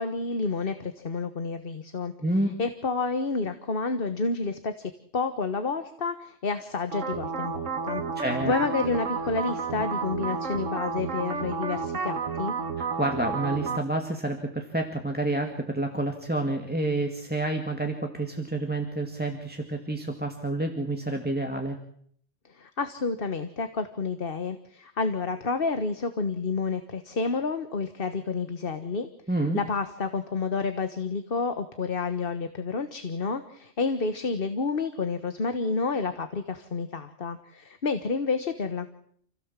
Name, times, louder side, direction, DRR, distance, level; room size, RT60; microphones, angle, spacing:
voice 1, 0.0-2.1 2.6-12.5 22.5-29.1 29.5-38.9, left 4 dB, 50° left, 9 dB, 1.5 m, -30 dB
voice 2, 2.2-2.5 8.2-8.5 12.8-21.8 29.3-29.6, right 2 dB, 10° right, 4 dB, 2.1 m, -29 dB
sound 1, 6.9-13.8, right 5 dB, 85° right, 1.9 m, -31 dB
28.5 x 16.5 x 7.5 m, 0.65 s
omnidirectional pair, 1.3 m